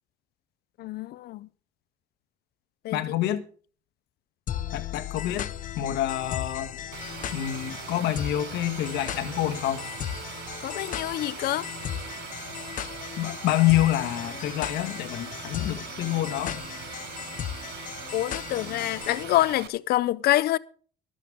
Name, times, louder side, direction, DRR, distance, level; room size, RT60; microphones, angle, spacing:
voice 1, 0.8-1.5 2.8-3.0 10.6-11.7 18.1-20.6, left 15 dB, 70° left, 0.5 m, -26 dB
voice 2, 2.9-3.4 4.7-5.5 5.7-6.8 7.3-9.9 13.2-16.7, left 13 dB, 85° left, 1.6 m, -27 dB
sound 1, 4.5-19.2, left 10 dB, 50° left, 0.9 m, -36 dB
sound 2, 6.9-19.7, right 12 dB, 75° right, 0.9 m, -41 dB
24.0 x 8.2 x 3.6 m
cardioid pair, 110°, 17 cm